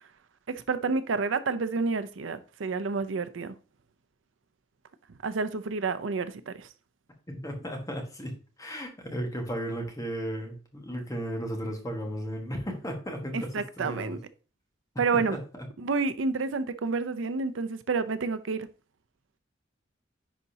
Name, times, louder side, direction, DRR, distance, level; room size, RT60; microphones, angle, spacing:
voice 1, 0.5-3.5 5.2-6.7 13.3-14.2 15.0-15.4 15.8-18.7, right 4 dB, 90° right, 0.5 m, -29 dB
voice 2, 7.3-14.2 15.1-15.7, equal, 20° left, 1.5 m, -35 dB
10.0 x 4.0 x 2.8 m
head